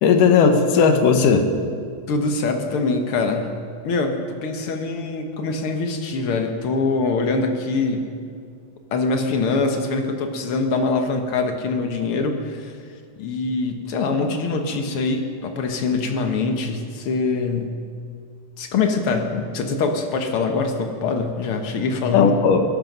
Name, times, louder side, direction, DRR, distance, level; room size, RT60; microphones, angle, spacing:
voice 1, 0.0-1.5 22.1-22.6, left 5 dB, 80° left, 6 dB, 2.7 m, -16 dB
voice 2, 2.1-3.5 3.8-8.1 8.9-12.8 13.2-17.7 18.6-22.3, left 3 dB, 55° left, 4 dB, 1.7 m, -23 dB
22.0 x 11.0 x 5.4 m, 2.3 s
omnidirectional pair, 3.7 m